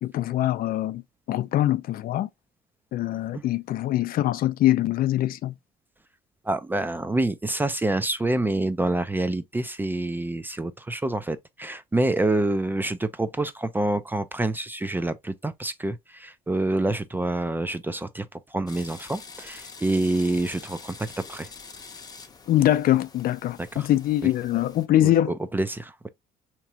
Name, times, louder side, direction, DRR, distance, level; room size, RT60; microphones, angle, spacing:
voice 1, 0.0-1.0 1.3-2.3 2.9-5.5 22.5-25.3, left 13 dB, 60° left, 0.5 m, -23 dB
voice 2, 6.5-21.5 23.8-23.9 25.0-25.1 25.5-25.9, right 2 dB, 10° right, 0.4 m, -27 dB
sound 1, 18.7-24.9, left 4 dB, 25° left, 0.7 m, -45 dB
4.5 x 3.0 x 2.7 m
cardioid pair, 110°, 17 cm